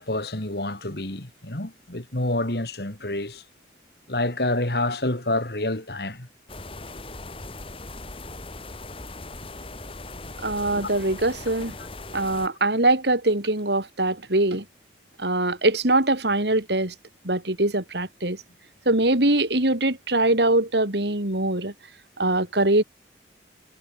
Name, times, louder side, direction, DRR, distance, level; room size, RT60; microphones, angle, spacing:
voice 1, 0.0-3.4 4.1-6.3 10.2-10.3, left 2 dB, 60° left, 2.9 m, -28 dB
sound 1, 6.5-12.5, left 2 dB, 30° left, 2.4 m, -39 dB
voice 2, 10.4-11.7 12.1-14.7 15.2-16.9 17.2-18.4 18.9-21.7 22.2-22.8, right 2 dB, 70° right, 3.5 m, -22 dB
head